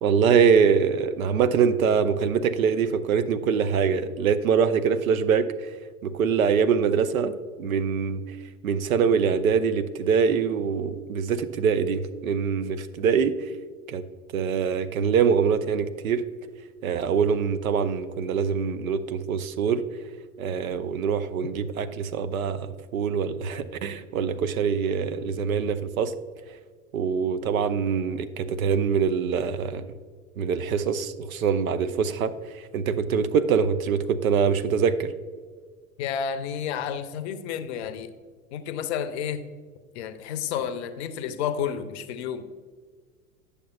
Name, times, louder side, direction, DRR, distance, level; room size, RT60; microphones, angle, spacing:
voice 1, 0.0-5.8 6.0-7.3 7.6-8.4 8.6-13.5 13.9-14.0 14.3-16.2 16.8-19.8 20.4-26.1 26.9-29.9 30.4-35.1, right 6 dB, 70° right, 11 dB, 0.6 m, -24 dB
voice 2, 36.0-38.1 38.5-39.4 39.9-42.5, left 8 dB, 50° left, 11 dB, 0.6 m, -31 dB
9.9 x 6.6 x 2.4 m, 1.5 s
figure-of-eight pair, 85°, 44 cm